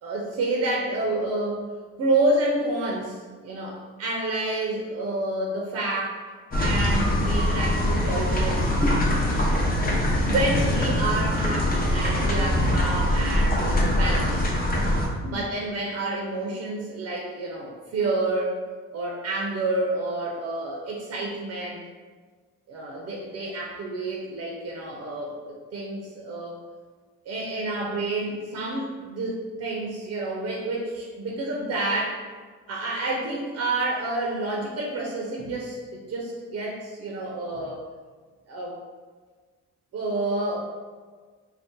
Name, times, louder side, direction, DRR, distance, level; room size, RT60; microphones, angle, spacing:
voice 1, 0.0-1.6 2.0-3.2 3.4-6.2 6.6-8.6 10.2-14.4 15.2-18.6 18.9-21.8 22.7-26.6 27.3-32.2 32.7-37.8 38.5-38.8 39.9-40.6, right 2 dB, 55° right, -2 dB, 0.6 m, -29 dB
sound 1, 6.5-15.1, left 1 dB, 30° left, 0.6 m, -23 dB
2.6 x 2.3 x 3.6 m, 1.5 s
cardioid pair, 90°, 30 cm